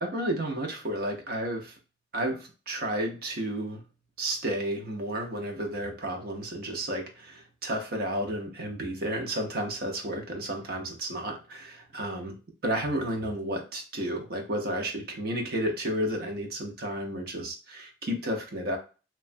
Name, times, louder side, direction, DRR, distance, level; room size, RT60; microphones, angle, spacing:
voice 1, 0.0-1.8 2.1-3.8 4.2-12.4 12.6-18.8, right 1 dB, 55° right, 2 dB, 0.7 m, -32 dB
3.0 x 2.2 x 2.5 m, 0.33 s
head